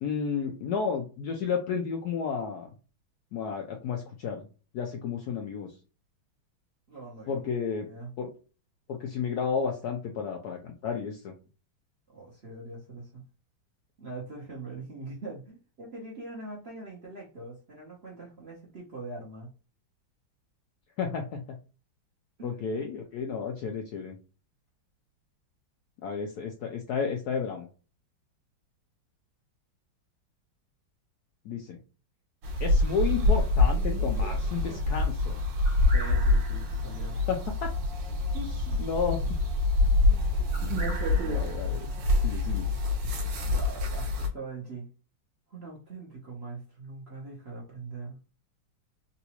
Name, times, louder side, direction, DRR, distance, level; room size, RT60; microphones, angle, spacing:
voice 1, 0.0-2.7 3.3-4.5 4.7-5.7 7.3-7.9 8.2-8.3 8.9-11.3 21.0-21.6 22.4-24.2 26.0-27.7 31.4-31.8 32.6-35.4 37.3-37.7 38.8-39.2 41.3-41.9 42.2-42.7, left 6 dB, 75° left, 2 dB, 0.9 m, -32 dB
voice 2, 6.9-8.1 12.1-13.2 14.0-19.5 22.4-22.6 35.9-37.2 38.3-38.9 41.0-41.4 43.4-44.9 45.5-48.2, right 3 dB, 50° right, -4 dB, 0.8 m, -42 dB
sound 1, 32.4-44.3, left 2 dB, 70° right, 1.4 m, -26 dB
3.9 x 2.3 x 2.9 m, 0.34 s
omnidirectional pair, 2.2 m